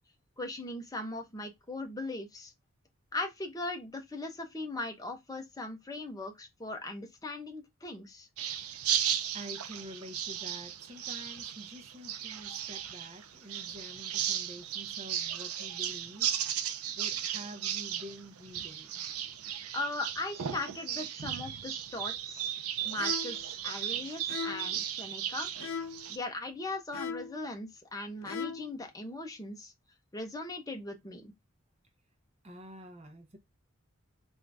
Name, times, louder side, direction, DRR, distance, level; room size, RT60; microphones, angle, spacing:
voice 1, 0.4-2.5 3.1-8.3 19.7-22.5 22.8-25.5 26.1-29.7 30.1-31.3, left 2 dB, 15° left, 0.8 m, -39 dB
sound 1, 8.4-26.2, right 10 dB, 90° right, 0.5 m, -35 dB
voice 2, 9.0-16.3 16.9-19.0 32.4-33.4, equal, 30° right, 0.8 m, -48 dB
sound 2, 23.0-23.4 24.3-24.8 25.6-26.1 26.9-27.4 28.2-28.8, left 6 dB, 65° left, 0.5 m, -38 dB
3.7 x 2.7 x 3.3 m
head